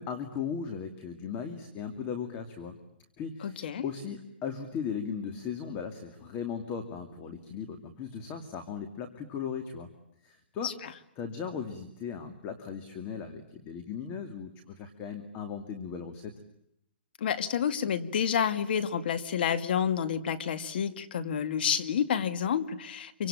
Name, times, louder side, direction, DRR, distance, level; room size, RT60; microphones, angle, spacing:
voice 1, 0.0-2.8 3.2-9.9 10.2-10.7 11.2-16.3, left 6 dB, 25° left, 7 dB, 2.5 m, -37 dB
voice 2, 3.4-3.8 10.6-10.7 17.2-23.3, left 8 dB, 60° left, 12 dB, 2.2 m, -29 dB
27.0 x 25.0 x 8.8 m, 0.76 s
hypercardioid pair, 150°, 6 cm